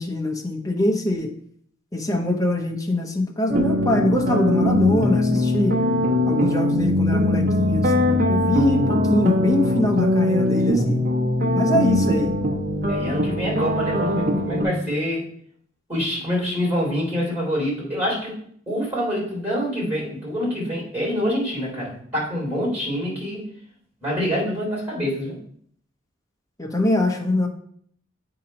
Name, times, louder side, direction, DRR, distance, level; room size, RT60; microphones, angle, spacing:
voice 1, 0.0-1.3 1.9-5.8 6.3-11.0 11.5-12.3 26.6-27.5, left 1 dB, 15° left, 2 dB, 0.9 m, -23 dB
sound 1, 3.5-14.6, left 1 dB, 50° right, 1.1 m, -21 dB
voice 2, 12.9-15.2 15.9-18.4 18.7-23.4 24.0-25.4, equal, 10° right, -5 dB, 3.1 m, -26 dB
8.1 x 2.9 x 5.2 m, 0.63 s
head